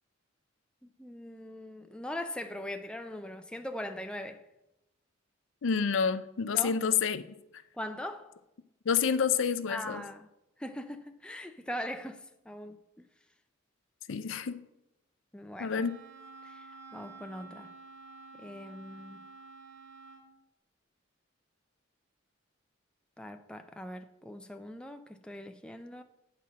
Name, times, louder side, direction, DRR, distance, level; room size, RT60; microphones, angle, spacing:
voice 1, 0.8-4.4 6.5-6.8 7.8-8.3 9.7-10.3 10.6-13.0 15.3-15.8 16.4-16.7 16.9-17.7 18.3-19.3 23.2-26.0, left 1 dB, 5° left, 0.4 m, -41 dB
voice 2, 5.6-7.2 8.9-10.1 14.1-14.6 15.6-16.0, left 6 dB, 75° left, 0.5 m, -28 dB
Wind instrument woodwind instrument, 15.7-20.3, right 3 dB, 85° right, 2.4 m, -50 dB
8.5 x 4.2 x 6.1 m
head